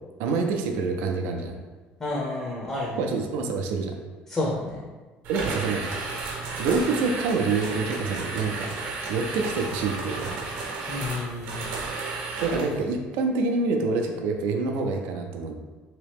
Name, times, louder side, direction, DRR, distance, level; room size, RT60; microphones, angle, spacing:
voice 1, 0.2-1.6 2.9-4.0 5.3-5.8 6.6-8.7 9.1-10.4 12.4-15.5, right 4 dB, 85° right, 4 dB, 0.4 m, -26 dB
voice 2, 2.0-3.1 4.3-4.8 10.9-11.7, left 2 dB, 20° left, -4 dB, 0.6 m, -30 dB
sound 1, 5.2-12.8, right 3 dB, 70° right, 0.8 m, -33 dB
3.1 x 2.9 x 3.4 m, 1.3 s
cardioid pair, 155°, 4 cm